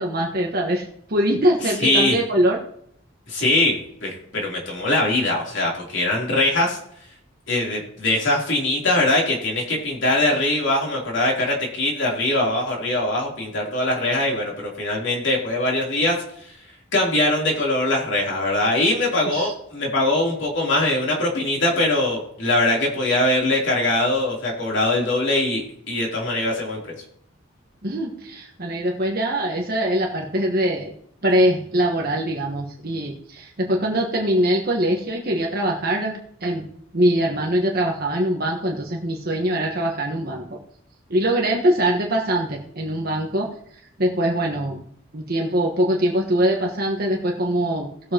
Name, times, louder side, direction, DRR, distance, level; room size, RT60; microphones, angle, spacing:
voice 1, 0.0-2.6 19.3-19.5 27.8-30.9 31.2-36.7 36.9-40.6 41.1-43.5 44.0-44.8 45.1-48.1, right 1 dB, 50° right, 0 dB, 1.3 m, -22 dB
voice 2, 1.8-2.2 3.3-6.8 7.5-16.1 16.4-16.5 16.9-26.9, left 1 dB, 65° left, -2 dB, 3.3 m, -22 dB
18.5 x 7.0 x 2.9 m, 0.68 s
head